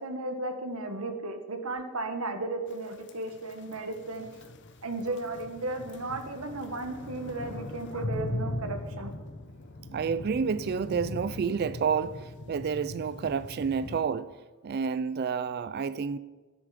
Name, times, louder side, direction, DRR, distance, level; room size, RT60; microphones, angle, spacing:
voice 1, 0.0-4.3 4.8-9.1, right 2 dB, 75° right, 7 dB, 1.5 m, -35 dB
sound 1, 2.9-14.0, left 1 dB, 55° left, 0.9 m, -40 dB
voice 2, 9.9-14.3 14.6-16.2, right 6 dB, 45° right, 15 dB, 0.3 m, -29 dB
12.0 x 10.0 x 5.0 m, 1.3 s
head